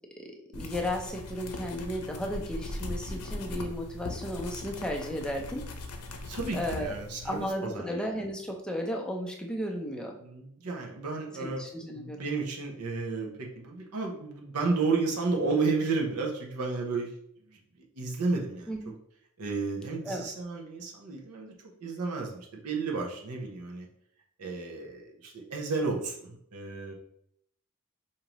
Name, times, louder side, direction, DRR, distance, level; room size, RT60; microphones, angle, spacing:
sound 1, 0.5-7.5, left 2 dB, 90° left, 0.6 m, -39 dB
voice 1, 0.5-5.7 6.5-6.9 7.2-10.2 11.4-12.3 18.7-18.9 20.0-20.2, equal, 5° left, 1 dB, 0.5 m, -34 dB
voice 2, 6.2-8.1 10.2-11.6 11.9-17.1 17.5-18.9 19.4-21.5 21.8-23.9 24.4-26.9, right 4 dB, 90° right, 0 dB, 0.8 m, -32 dB
5.0 x 2.8 x 2.9 m, 0.71 s
head